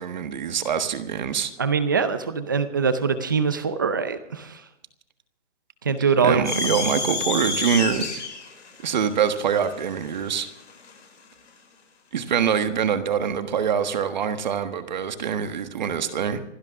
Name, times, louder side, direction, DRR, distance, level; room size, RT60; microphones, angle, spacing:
voice 1, 0.0-1.5 6.2-8.1 8.8-10.5 12.1-16.4, right 7 dB, 40° right, 9 dB, 1.4 m, -24 dB
voice 2, 1.6-4.6 5.8-6.8, right 5 dB, 20° right, 12 dB, 0.6 m, -23 dB
sound 1, 6.4-11.0, left 4 dB, 75° left, 6.3 m, -29 dB
26.5 x 12.0 x 3.6 m, 0.86 s
hypercardioid pair, 170°, 36 cm